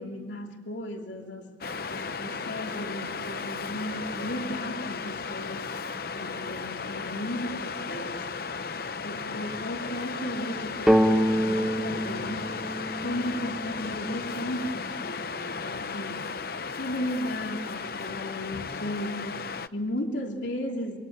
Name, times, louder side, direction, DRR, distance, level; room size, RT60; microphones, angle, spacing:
voice 1, 0.0-1.5 1.9-5.7 6.1-8.3 9.0-12.5 13.0-16.3 16.8-21.0, left 1 dB, 90° left, 2 dB, 3.0 m, -35 dB
Waves surf, 1.6-19.7, left 5 dB, 55° left, 0.8 m, -35 dB
sound 1, 10.9-14.5, equal, ahead, 1.0 m, -26 dB
28.0 x 24.0 x 8.8 m, 1.5 s
head